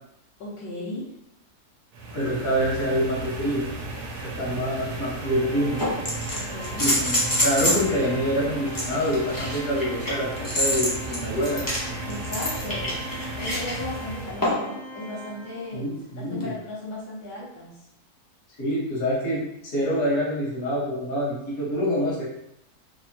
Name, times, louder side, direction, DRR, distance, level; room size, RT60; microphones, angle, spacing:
voice 1, 0.4-1.1 6.3-6.9 12.1-13.0 13.4-15.9 16.2-17.8, left 1 dB, 80° left, -9 dB, 1.4 m, -36 dB
sound 1, 1.9-14.6, right 2 dB, 85° right, 1.1 m, -35 dB
voice 2, 2.1-3.6 4.2-5.8 6.8-11.6 15.7-16.5 18.6-19.4 19.7-22.2, equal, 65° left, -7 dB, 1.5 m, -26 dB
sound 2, 4.7-4.8 5.8-7.9 8.7-13.7 14.4-14.8 16.4-16.5, left 1 dB, 35° left, 0.3 m, -26 dB
Organ, 5.2-15.9, equal, 50° right, 0.7 m, -41 dB
3.5 x 2.1 x 2.7 m, 0.81 s
omnidirectional pair, 1.6 m